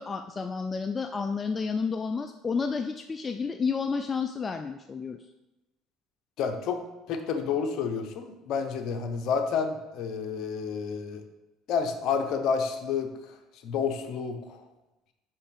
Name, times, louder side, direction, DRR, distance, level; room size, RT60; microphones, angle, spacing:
voice 1, 0.0-5.2, left 5 dB, 30° left, 7 dB, 0.4 m, -31 dB
voice 2, 6.4-6.8 7.1-11.2 11.7-13.1 13.6-14.6, left 6 dB, 65° left, 6 dB, 0.9 m, -29 dB
5.6 x 5.4 x 5.1 m, 1.0 s
supercardioid pair, 80°, 0 cm